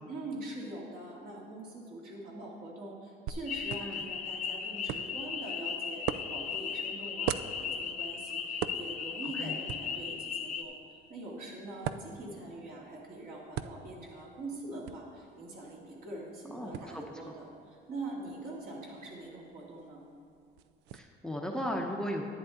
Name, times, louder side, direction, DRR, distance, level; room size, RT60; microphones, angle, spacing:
voice 1, 0.1-6.0 6.3-20.0, right 2 dB, 60° right, -4 dB, 2.6 m, -43 dB
sound 1, 3.3-21.0, right 10 dB, 90° right, 0.4 m, -44 dB
Spring peepers at night, 3.5-10.6, left 6 dB, 45° left, 0.7 m, -37 dB
voice 2, 16.5-17.0 20.9-22.2, equal, 5° left, 1 dB, 0.8 m, -36 dB
10.5 x 9.5 x 3.9 m, 2.4 s
cardioid pair, 110°, 17 cm